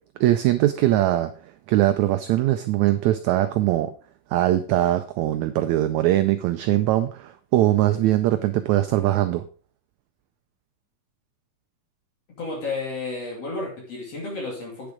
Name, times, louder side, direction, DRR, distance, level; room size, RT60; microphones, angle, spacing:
voice 1, 0.2-1.3 1.7-3.9 4.3-9.4, right 14 dB, 80° right, 10 dB, 1.7 m, -21 dB
voice 2, 12.4-14.9, left 3 dB, 50° left, -2 dB, 3.5 m, -32 dB
9.1 x 6.9 x 4.9 m, 0.40 s
omnidirectional pair, 3.8 m